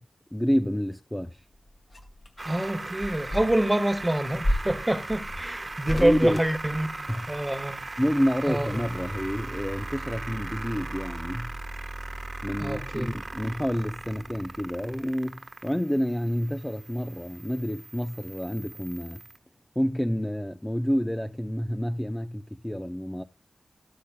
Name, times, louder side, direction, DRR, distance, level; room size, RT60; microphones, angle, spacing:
voice 1, 0.3-1.4 5.9-6.4 7.1-7.3 8.0-11.5 12.4-19.2 19.8-23.2, equal, 10° left, 0.5 m, -29 dB
sound 1, 1.4-7.4 8.8-9.7 9.9-10.0, equal, 40° left, 2.1 m, -34 dB
voice 2, 2.4-7.8 8.5-8.9 12.6-13.1, right 1 dB, 10° right, 1.1 m, -26 dB
sound 2, 2.4-19.4, right 2 dB, 30° right, 1.3 m, -38 dB
13.5 x 13.0 x 2.2 m
wide cardioid pair, 105°, 0 cm